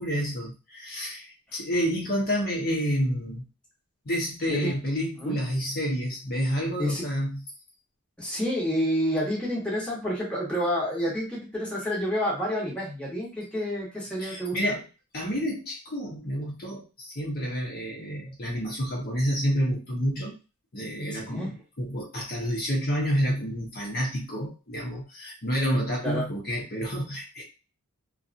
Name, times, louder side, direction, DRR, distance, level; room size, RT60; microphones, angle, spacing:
voice 1, 0.0-3.4 4.0-7.4 14.2-14.8 15.1-20.3 20.7-27.4, equal, 45° left, -3 dB, 0.9 m, -29 dB
voice 2, 8.2-14.8 21.2-21.5 26.0-26.2, equal, 5° left, -5 dB, 1.0 m, -29 dB
2.7 x 2.4 x 2.5 m, 0.31 s
head